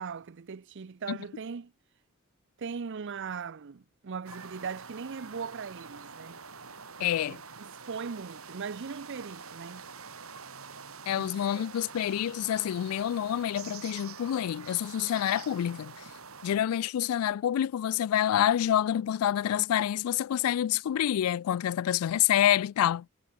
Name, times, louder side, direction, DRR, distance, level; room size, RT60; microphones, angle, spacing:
voice 1, 0.0-1.7 2.6-6.4 7.0-9.9 11.2-11.7, right 5 dB, 55° right, 0.6 m, -39 dB
sound 1, 4.2-16.6, right 5 dB, 75° right, 5.0 m, -46 dB
voice 2, 7.0-7.4 11.1-16.0 16.4-23.1, left 10 dB, 90° left, 0.3 m, -27 dB
head